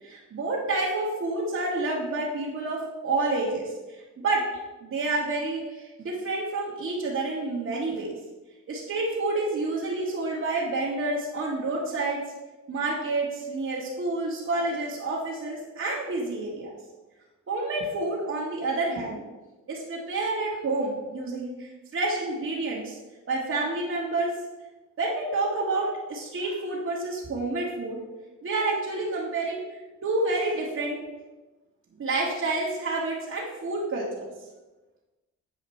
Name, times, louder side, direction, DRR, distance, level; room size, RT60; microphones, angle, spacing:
voice 1, 0.0-4.5 4.8-8.1 8.7-12.2 12.7-16.7 17.5-19.2 19.7-23.0 23.3-24.4 25.0-28.0 28.4-31.0 32.0-34.3, right 2 dB, 50° right, -7 dB, 1.7 m, -29 dB
8.7 x 4.9 x 4.3 m, 1.2 s
cardioid pair, 90°, 30 cm